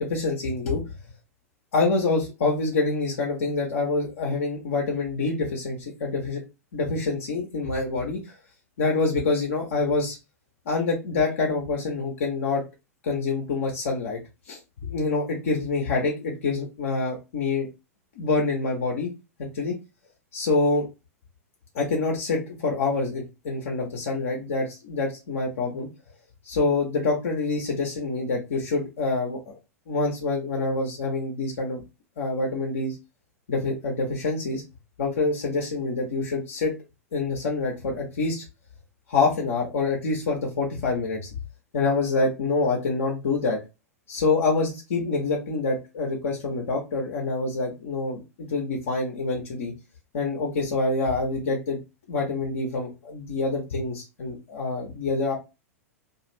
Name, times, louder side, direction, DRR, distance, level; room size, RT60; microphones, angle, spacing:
voice 1, 0.1-0.8 1.7-6.4 6.7-8.2 8.8-10.2 10.7-12.6 13.0-14.2 14.5-17.7 18.2-19.1 19.5-19.7 20.3-20.9 21.7-25.9 26.4-29.5 29.9-31.8 32.2-33.0 33.5-34.6 35.0-36.7 37.1-38.4 39.1-41.3 41.7-43.6 44.1-49.7 50.1-51.8 52.1-55.3, left 3 dB, 60° left, -1 dB, 0.7 m, -26 dB
2.4 x 2.3 x 3.0 m, 0.26 s
figure-of-eight pair, 95°, 8 cm